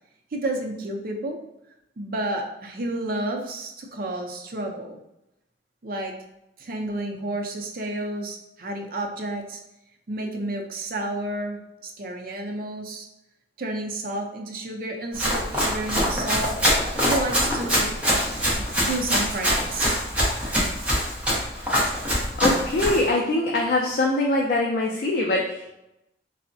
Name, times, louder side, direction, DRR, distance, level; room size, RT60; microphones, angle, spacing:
voice 1, 0.3-1.4 2.0-5.0 5.8-6.2 6.6-9.6 10.1-13.1 13.6-16.8 17.0-18.5 18.8-20.0, right 1 dB, 55° right, 2 dB, 0.5 m, -31 dB
Run, 15.1-23.1, equal, 10° right, 0.7 m, -24 dB
voice 2, 22.4-25.7, left 2 dB, 50° left, -1 dB, 0.4 m, -23 dB
3.4 x 2.0 x 2.6 m, 0.88 s
head